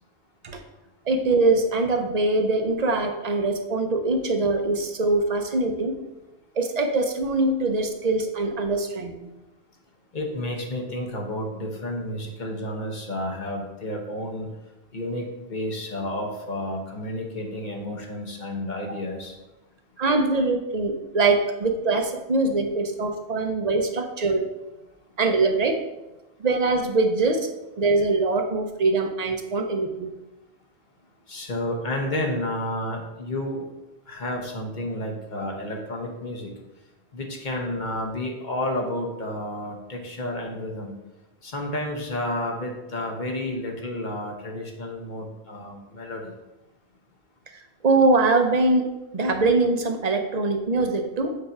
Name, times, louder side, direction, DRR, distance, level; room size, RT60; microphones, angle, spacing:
voice 1, 1.1-6.0 6.6-9.3 20.0-24.5 25.2-25.8 26.4-27.5 27.8-30.1 47.5-51.4, right 3 dB, 45° right, 4 dB, 0.7 m, -23 dB
voice 2, 10.1-14.5 14.9-19.4 31.3-33.6 34.1-36.5 37.1-40.9 41.4-46.3, left 1 dB, 45° left, 1 dB, 1.1 m, -31 dB
6.7 x 2.7 x 5.6 m, 0.98 s
omnidirectional pair, 1.1 m